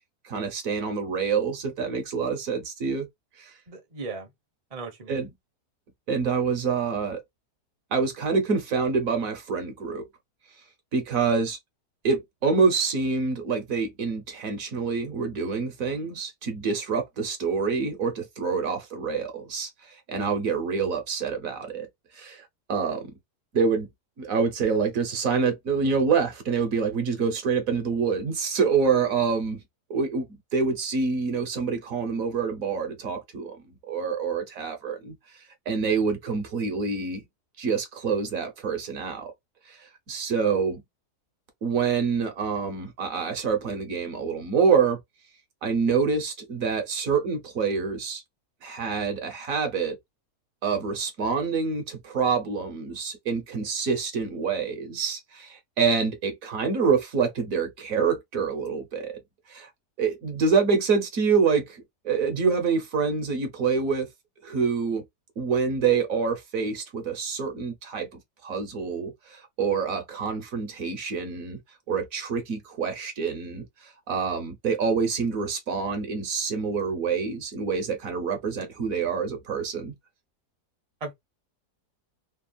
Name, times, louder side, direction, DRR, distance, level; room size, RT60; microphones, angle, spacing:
voice 1, 0.2-3.1 3.4-3.5 5.1-5.3 6.1-7.2 7.9-10.0 10.9-11.6 12.0-21.9 22.1-23.1 23.5-23.9 24.2-29.6 29.9-35.1 35.7-37.2 37.6-39.3 39.7-40.8 41.6-45.0 45.6-48.2 48.6-50.0 50.6-59.2 59.5-59.7 60.0-64.1 64.4-65.0 65.4-71.6 71.9-79.9, right 5 dB, 60° right, 1.2 m, -26 dB
voice 2, 3.7-4.3 4.7-5.2 81.0-81.1, right 3 dB, 30° right, 0.7 m, -37 dB
3.3 x 2.3 x 2.3 m
omnidirectional pair, 1.7 m